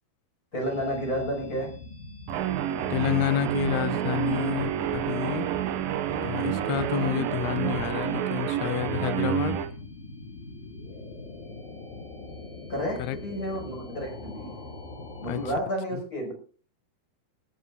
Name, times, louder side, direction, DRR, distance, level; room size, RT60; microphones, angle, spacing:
voice 1, 0.5-1.7 12.7-14.6 15.2-16.3, equal, 20° left, 6.4 m, -31 dB
sound 1, 0.6-15.6, left 2 dB, 45° left, 5.8 m, -43 dB
Guitar, 2.3-9.7, right 10 dB, 70° right, 2.5 m, -29 dB
voice 2, 2.9-5.5 6.2-9.6 13.0-13.2 15.3-15.4 15.9-16.0, left 15 dB, 80° left, 2.7 m, -29 dB
20.0 x 9.4 x 4.1 m
omnidirectional pair, 4.6 m